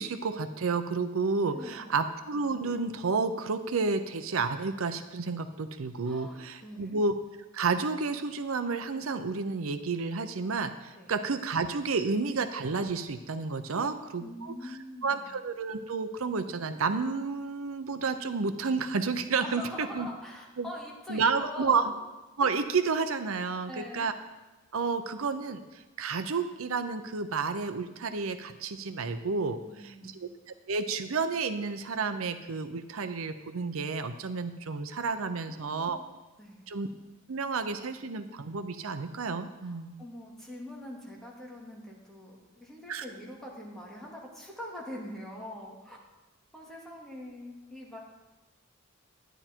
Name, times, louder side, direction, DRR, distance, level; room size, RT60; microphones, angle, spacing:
voice 1, 0.0-7.1 7.5-14.5 15.0-20.1 20.6-20.7 21.1-21.9 22.4-24.1 24.7-25.6 26.0-29.6 29.8-30.3 30.7-36.0 36.7-36.9 37.3-40.0 42.9-43.0, right 4 dB, 80° right, 10 dB, 0.7 m, -31 dB
voice 2, 1.5-2.0 6.0-7.0 11.0-11.1 13.7-15.3 19.4-21.9 23.7-24.1 29.7-30.2 35.5-36.1 36.4-36.7 39.6-46.0 46.5-48.0, left 1 dB, ahead, -4 dB, 2.3 m, -44 dB
12.5 x 10.0 x 4.5 m, 1.1 s
head